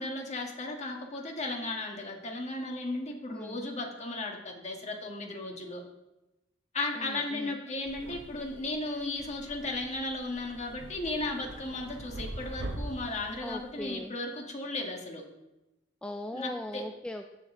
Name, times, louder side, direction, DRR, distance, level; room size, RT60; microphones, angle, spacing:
voice 1, 0.0-5.8 6.7-15.2 16.3-16.8, left 2 dB, 40° left, 1 dB, 1.5 m, -35 dB
voice 2, 3.3-3.7 7.0-7.6 13.4-14.2 16.0-17.4, left 1 dB, 5° left, 4 dB, 0.3 m, -40 dB
sound 1, 7.9-14.0, right 1 dB, 90° right, 1.0 m, -43 dB
15.5 x 5.3 x 3.7 m, 0.98 s
head